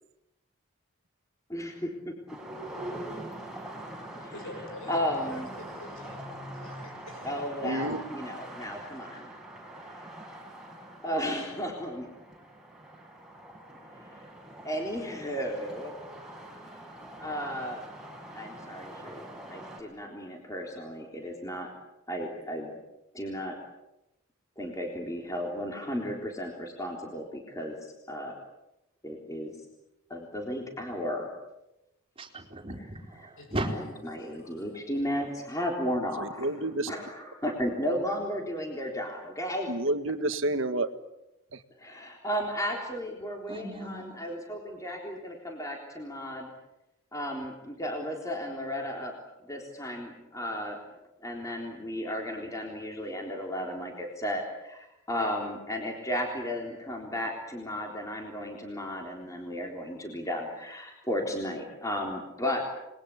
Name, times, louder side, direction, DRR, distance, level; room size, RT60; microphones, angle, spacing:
voice 1, 1.5-2.1 4.2-4.3 4.9-5.5 7.2-9.3 9.7-10.1 11.0-12.1 13.9-14.3 14.6-15.9 17.2-17.8 18.3-21.7 22.1-22.7 23.1-23.6 24.6-27.8 28.1-28.3 29.0-29.5 30.1-31.3 33.6-33.7 34.0-36.5 36.9-39.7 41.8-46.5 47.1-49.1 49.4-50.8 51.2-62.6, equal, 15° left, 1 dB, 3.7 m, -34 dB
sound 1, 2.3-19.8, right 1 dB, 5° right, 5.0 m, -44 dB
voice 2, 4.3-7.3 33.4-34.8 35.1-35.2, left 1 dB, 65° left, 4 dB, 6.4 m, -47 dB
voice 3, 7.6-8.0 36.2-36.9 39.7-40.9 41.5-41.6, right 2 dB, 60° right, 9 dB, 1.8 m, -29 dB
voice 4, 32.2-33.7 43.5-44.2, right 1 dB, 25° right, 2 dB, 4.0 m, -36 dB
29.5 x 21.5 x 8.6 m, 0.91 s
head